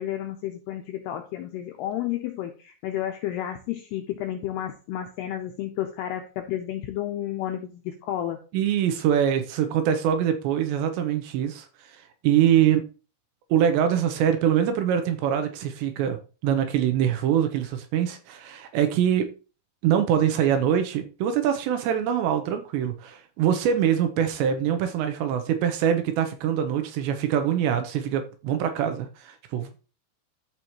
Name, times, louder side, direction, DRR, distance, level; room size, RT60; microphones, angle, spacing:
voice 1, 0.0-8.4, left 12 dB, 90° left, 2.3 m, -31 dB
voice 2, 8.5-11.7 12.2-12.8 13.5-16.2 16.4-19.3 19.8-29.9, right 9 dB, 75° right, 2.8 m, -24 dB
13.5 x 4.6 x 3.0 m
omnidirectional pair, 5.5 m